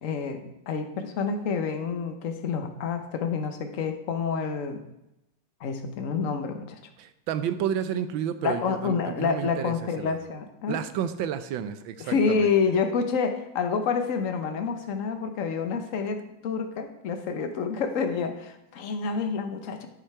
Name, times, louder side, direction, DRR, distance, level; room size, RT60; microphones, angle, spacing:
voice 1, 0.0-4.8 5.6-6.8 8.4-10.8 12.1-19.9, left 5 dB, 50° left, 7 dB, 1.1 m, -28 dB
voice 2, 7.0-10.2 10.7-12.5, right 9 dB, 75° right, 11 dB, 1.4 m, -31 dB
9.5 x 6.7 x 4.6 m, 0.88 s
omnidirectional pair, 2.2 m